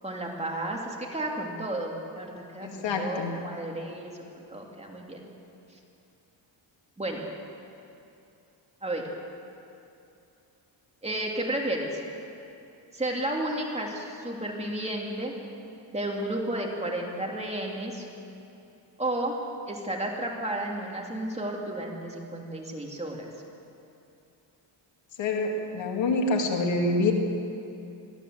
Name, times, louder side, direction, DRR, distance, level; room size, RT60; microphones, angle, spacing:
voice 1, 0.0-5.2 7.0-7.2 8.8-9.1 11.0-12.0 12.9-15.3 15.9-18.0 19.0-19.4 19.7-23.3, right 1 dB, 15° right, -1 dB, 2.9 m, -32 dB
voice 2, 2.6-3.3 25.2-27.1, left 3 dB, 75° left, 2 dB, 2.7 m, -26 dB
22.5 x 14.5 x 7.9 m, 2.7 s
cardioid pair, 115°, 45 cm